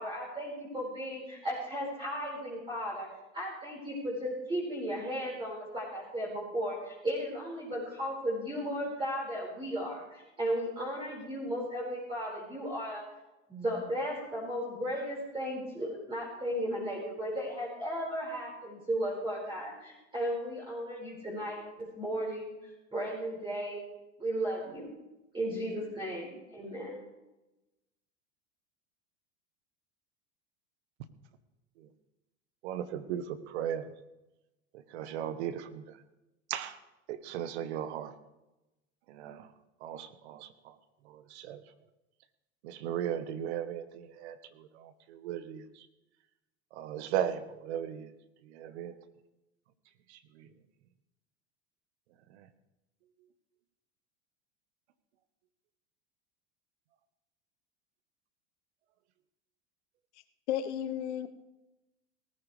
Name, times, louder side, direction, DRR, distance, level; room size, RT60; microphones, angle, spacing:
voice 1, 0.0-3.1 3.3-13.0 13.5-22.5 22.9-23.9 24.2-24.9 25.3-27.0, equal, 15° right, -6 dB, 4.9 m, -35 dB
voice 2, 32.6-33.8 34.9-35.8 36.5-36.7 37.1-38.1 39.2-39.4 39.8-40.4 41.4-41.6 42.6-44.4 45.2-45.6 46.8-48.1 48.6-48.9, right 10 dB, 70° right, 12 dB, 1.3 m, -35 dB
voice 3, 60.5-61.3, left 10 dB, 75° left, 10 dB, 1.2 m, -33 dB
19.0 x 14.0 x 3.3 m, 1.0 s
hypercardioid pair, 100°, 34 cm